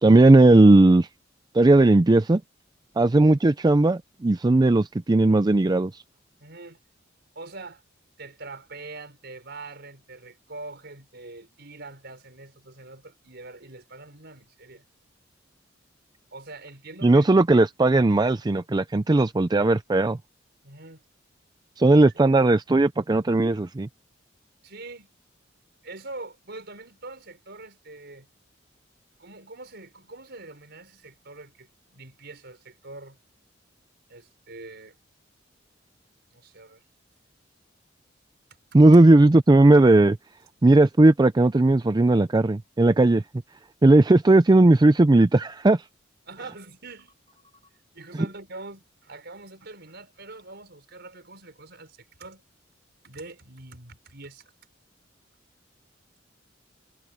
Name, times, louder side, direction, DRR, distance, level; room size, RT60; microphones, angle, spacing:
voice 1, 0.0-1.1 1.5-2.4 3.0-5.9 17.0-20.2 21.8-23.9 38.7-40.2 40.6-43.2 43.8-45.8, right 2 dB, 20° right, 0.4 m, -17 dB
voice 2, 6.4-6.8 7.3-7.8 8.2-14.8 16.3-17.3 20.6-21.0 24.6-25.1 25.8-28.3 29.2-33.2 34.1-35.0 36.3-36.8 38.8-39.3 46.3-52.4 53.0-54.4, right 3 dB, 60° right, 5.2 m, -43 dB
head